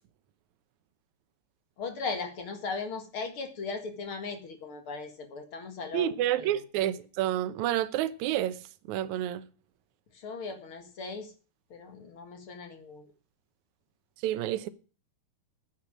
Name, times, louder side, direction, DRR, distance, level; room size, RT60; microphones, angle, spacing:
voice 1, 1.8-6.1 6.4-6.5 10.1-11.3 11.7-13.1, left 4 dB, 45° left, 2.0 m, -38 dB
voice 2, 5.9-8.6 8.9-9.4 14.2-14.7, right 12 dB, 70° right, 1.8 m, -29 dB
9.9 x 8.6 x 7.3 m
omnidirectional pair, 4.3 m